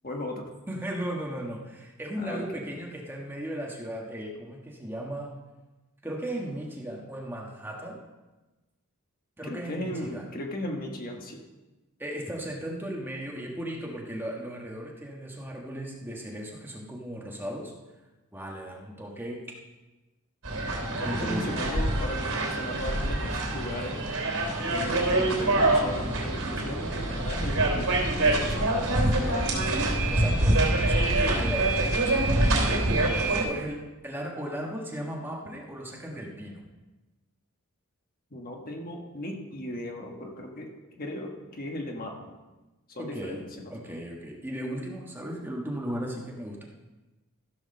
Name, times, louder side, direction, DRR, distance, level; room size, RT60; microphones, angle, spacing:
voice 1, 0.0-0.5 2.2-2.6 9.5-11.4 21.0-24.0 24.7-28.0 28.4-29.8 38.3-42.1 42.9-43.4, left 1 dB, 40° left, 1 dB, 1.3 m, -37 dB
voice 2, 0.7-5.3 6.0-8.0 9.4-10.3 12.0-17.7 18.3-19.4 21.0-21.6 30.1-30.6 30.8-32.6 33.4-36.6 43.0-43.4 43.7-46.7, right 1 dB, 10° right, -1 dB, 1.3 m, -36 dB
sound 1, 20.4-33.4, right 2 dB, 75° right, 3.4 m, -25 dB
14.5 x 4.9 x 6.5 m, 1.1 s
head